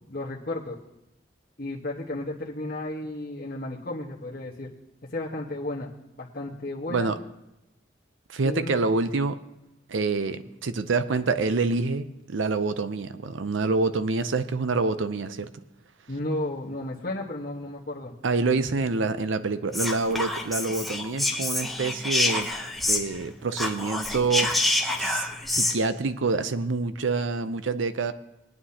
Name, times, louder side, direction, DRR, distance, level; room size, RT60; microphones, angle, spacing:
voice 1, 0.1-0.8 1.6-4.7 5.0-5.9 6.2-7.1 8.4-8.7 16.1-18.1, left 1 dB, 50° left, -6 dB, 1.2 m, -33 dB
voice 2, 8.3-9.4 9.9-15.5 18.2-22.5 22.9-24.5 25.0-28.1, right 3 dB, 85° right, 12 dB, 0.6 m, -27 dB
Whispering, 19.7-23.3 23.5-25.8, left 2 dB, ahead, 0.7 m, -27 dB
20.0 x 9.5 x 2.8 m, 0.91 s
head